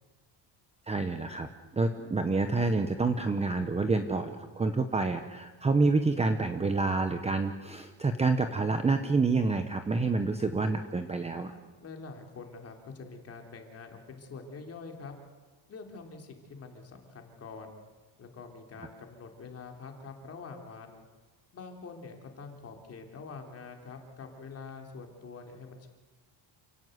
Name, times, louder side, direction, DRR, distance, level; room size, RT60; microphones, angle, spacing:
voice 1, 0.9-11.5, right 3 dB, 15° right, 7 dB, 0.9 m, -28 dB
voice 2, 11.8-15.1 15.7-17.8 18.2-21.0 21.5-25.9, left 4 dB, 30° left, 3 dB, 3.4 m, -45 dB
28.5 x 17.5 x 8.0 m, 1.3 s
cardioid pair, 175°, 47 cm